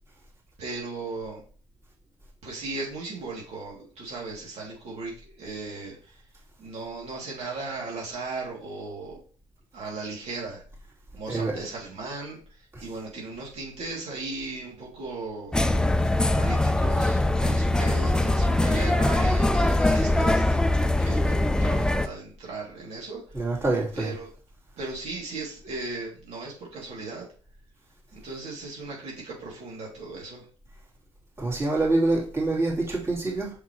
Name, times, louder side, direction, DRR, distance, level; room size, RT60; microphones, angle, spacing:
voice 1, 0.6-1.4 2.4-6.2 6.6-9.2 9.7-10.6 11.1-15.6 16.3-20.6 21.0-23.6 23.9-24.3 24.8-27.3 28.1-30.5, right 3 dB, 70° right, 2.7 m, -37 dB
voice 2, 11.3-11.6 12.7-12.8 23.3-24.1 31.4-33.5, right 2 dB, 25° right, 3.3 m, -26 dB
sound 1, 15.5-22.1, left 1 dB, 5° left, 0.5 m, -22 dB
6.1 x 5.9 x 3.1 m
cardioid pair, 90°, 11 cm